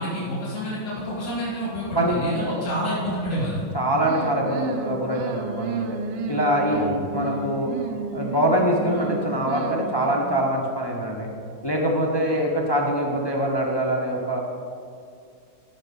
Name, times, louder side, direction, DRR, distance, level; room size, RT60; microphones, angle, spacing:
voice 1, 0.0-3.6 6.7-7.0, equal, 50° left, -7 dB, 3.5 m, -28 dB
voice 2, 1.9-2.7 3.7-6.0 6.3-7.8 8.1-11.3 11.6-14.4, equal, 30° left, -1 dB, 0.4 m, -24 dB
sound 1, 4.0-10.4, right 5 dB, 70° right, 1.1 m, -32 dB
14.5 x 5.8 x 5.4 m, 2.4 s
omnidirectional pair, 2.2 m